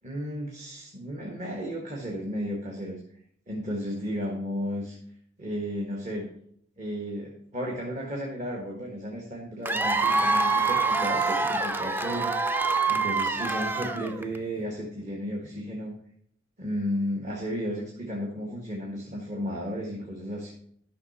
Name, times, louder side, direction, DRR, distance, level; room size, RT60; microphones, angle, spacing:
voice 1, 0.0-3.0 3.5-5.0 5.4-6.3 6.8-12.6 12.9-16.0 16.6-20.5, equal, 40° right, -1 dB, 1.6 m, -33 dB
Cheering / Applause / Crowd, 9.7-14.4, right 4 dB, 10° right, 0.4 m, -25 dB
12.0 x 5.8 x 4.2 m, 0.64 s
head